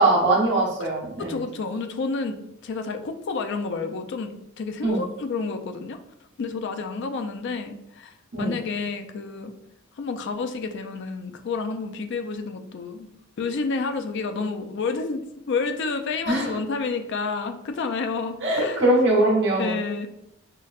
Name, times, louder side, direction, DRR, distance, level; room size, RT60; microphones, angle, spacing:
voice 1, 0.0-1.4 4.8-5.1 8.3-8.5 16.3-16.5 18.4-19.7, right 2 dB, 60° right, -2 dB, 1.1 m, -21 dB
voice 2, 1.3-2.4 2.6-6.0 6.4-8.1 8.4-9.5 10.0-13.1 13.4-18.8 19.6-20.1, left 4 dB, 60° left, 6 dB, 0.4 m, -29 dB
5.6 x 2.1 x 2.4 m, 0.82 s
head